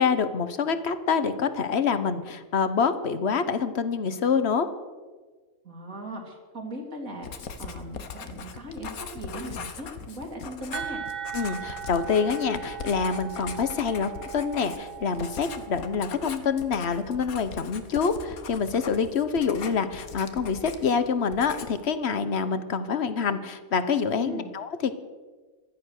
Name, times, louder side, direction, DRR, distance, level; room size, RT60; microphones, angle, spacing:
voice 1, 0.0-4.7 11.3-24.9, left 6 dB, 50° left, 12 dB, 1.2 m, -26 dB
voice 2, 5.6-11.0 24.2-24.5, right 1 dB, 75° right, 0 dB, 3.2 m, -38 dB
Writing, 7.2-21.0 21.3-21.9, left 6 dB, 90° left, 1.6 m, -40 dB
sound 1, 10.7-16.3, right 9 dB, 45° right, 0.6 m, -39 dB
15.5 x 12.5 x 6.5 m, 1.4 s
omnidirectional pair, 1.5 m